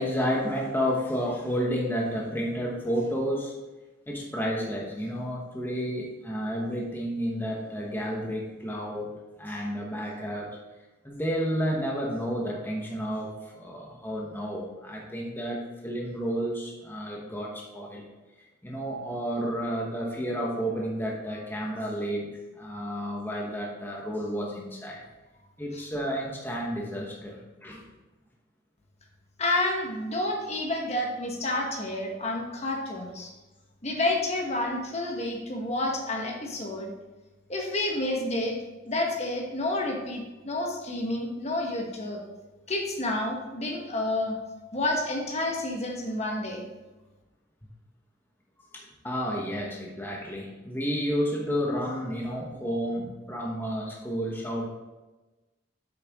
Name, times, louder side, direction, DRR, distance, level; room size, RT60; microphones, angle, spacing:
voice 1, 0.0-3.5 4.1-9.1 9.4-10.6 11.0-18.0 18.6-25.0 25.6-27.8 48.7-54.7, equal, 10° left, -2 dB, 1.1 m, -31 dB
voice 2, 29.4-33.3 33.8-36.9 37.5-38.6 38.8-42.2 42.7-44.3 44.7-46.6, left 1 dB, 35° left, 1 dB, 1.2 m, -29 dB
8.2 x 6.6 x 3.6 m, 1.1 s
head